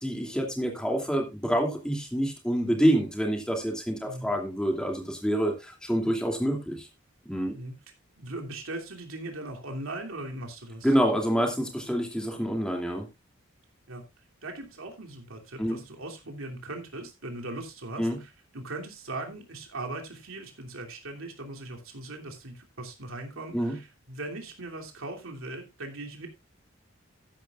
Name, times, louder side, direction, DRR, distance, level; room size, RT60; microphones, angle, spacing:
voice 1, 0.0-6.9 7.2-7.5 10.8-13.1 15.6-15.8 18.0-18.2 23.5-23.8, equal, 5° left, 2 dB, 2.8 m, -27 dB
voice 2, 8.2-10.9 13.9-14.0 14.4-26.3, right 2 dB, 85° right, 2 dB, 3.0 m, -39 dB
13.5 x 10.5 x 2.5 m, 0.23 s
head